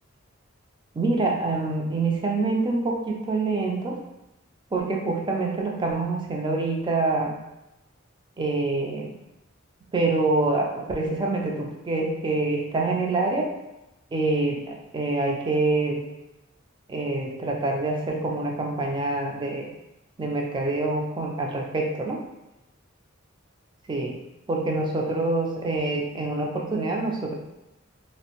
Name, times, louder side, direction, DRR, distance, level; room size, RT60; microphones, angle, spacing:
voice 1, 0.9-4.0 4.7-7.4 8.4-9.1 9.9-13.5 14.1-16.0 16.9-19.7 20.2-22.2 23.9-24.1 24.5-27.3, right 2 dB, 25° right, 0 dB, 0.4 m, -26 dB
2.4 x 2.1 x 2.8 m, 0.93 s
head